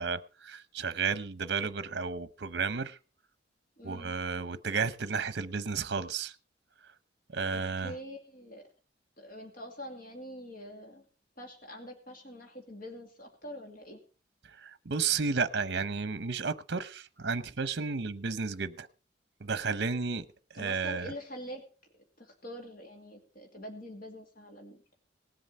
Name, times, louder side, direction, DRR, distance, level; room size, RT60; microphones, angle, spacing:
voice 1, 0.0-3.0 3.8-6.3 7.3-7.9 14.6-18.9 19.4-20.3 20.5-21.1, right 5 dB, 60° right, 0.8 m, -32 dB
voice 2, 3.8-4.1 7.5-8.6 9.2-11.0 11.4-14.0 20.5-21.6 22.2-24.8, equal, 50° left, 2.5 m, -45 dB
18.5 x 7.8 x 5.4 m
head